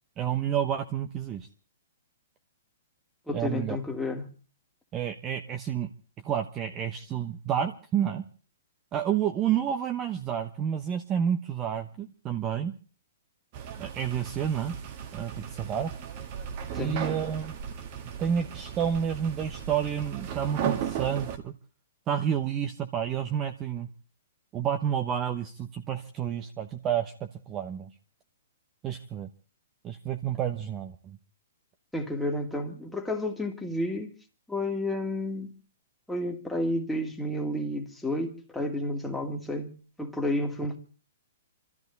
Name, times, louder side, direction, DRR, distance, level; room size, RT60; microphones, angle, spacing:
voice 1, 0.2-1.5 3.3-3.8 4.9-5.9 6.2-8.3 8.9-12.7 13.8-14.7 15.1-15.9 16.8-17.5 18.2-21.5 22.1-23.9 24.5-27.9 28.8-29.3 29.8-31.2, right 9 dB, 25° right, 1.0 m, -30 dB
voice 2, 3.3-4.3 16.7-17.2 31.9-34.1 34.5-35.5 36.1-40.8, left 1 dB, ahead, 2.2 m, -31 dB
sound 1, 13.5-21.4, right 8 dB, 45° right, 1.8 m, -36 dB
26.0 x 13.5 x 4.1 m
hypercardioid pair, 135°, 0 cm